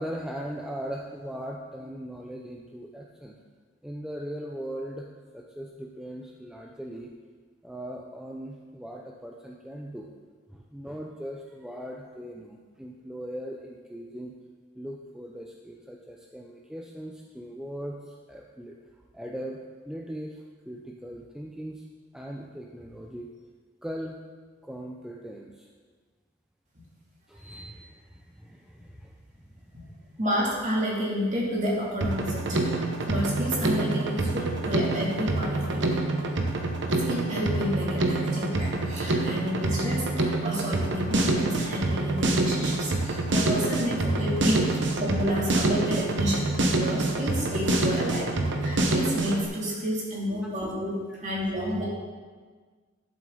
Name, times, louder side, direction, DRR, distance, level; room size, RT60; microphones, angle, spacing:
voice 1, 0.0-3.4 3.8-7.1 7.6-10.1 10.5-14.3 14.8-18.8 19.1-19.6 19.8-21.8 22.1-23.3 23.8-24.2 24.6-25.7 27.3-30.0 50.3-50.4 51.1-51.2, equal, 5° right, -1 dB, 0.5 m, -39 dB
voice 2, 30.2-32.6 33.1-35.9 37.1-46.5 46.8-48.3 48.6-51.9, equal, 40° right, -5 dB, 2.6 m, -30 dB
Drum kit, 32.0-49.4, right 2 dB, 65° right, 1.0 m, -26 dB
11.5 x 7.3 x 3.8 m, 1.5 s
head